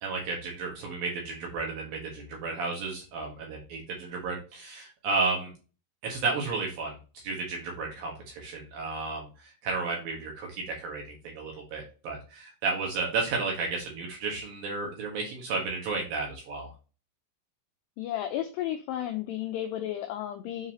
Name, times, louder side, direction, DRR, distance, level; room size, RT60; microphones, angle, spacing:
voice 1, 0.0-5.5 6.0-7.0 7.2-16.7, right 4 dB, 65° right, 0 dB, 2.6 m, -33 dB
voice 2, 18.0-20.7, left 12 dB, 85° left, 6 dB, 2.4 m, -33 dB
7.4 x 4.8 x 2.7 m, 0.33 s
omnidirectional pair, 5.5 m